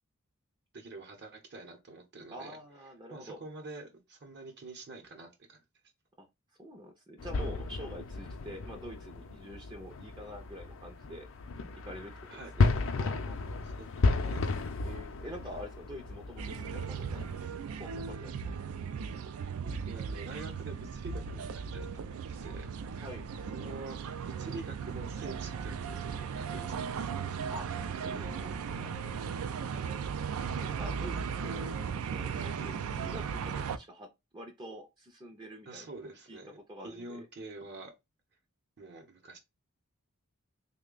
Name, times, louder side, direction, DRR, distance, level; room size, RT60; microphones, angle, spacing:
voice 1, 0.7-2.6 3.1-5.6 12.3-12.5 13.6-14.6 19.6-22.7 23.5-24.0 24.2-27.1 29.6-29.9 35.7-37.9 38.8-39.4, right 2 dB, 55° right, 0.8 m, -47 dB
voice 2, 2.3-3.4 6.2-6.3 6.6-11.3 11.7-13.5 14.9-17.2 17.8-18.3 23.0-23.2 27.5-27.7 28.0-28.9 30.4-34.1 34.3-35.9 36.3-36.4 36.7-37.3, equal, 20° right, 0.5 m, -46 dB
sound 1, 7.2-17.4, left 3 dB, 65° left, 0.5 m, -33 dB
sound 2, 16.4-33.8, right 6 dB, 75° right, 0.4 m, -37 dB
3.3 x 2.2 x 3.7 m
head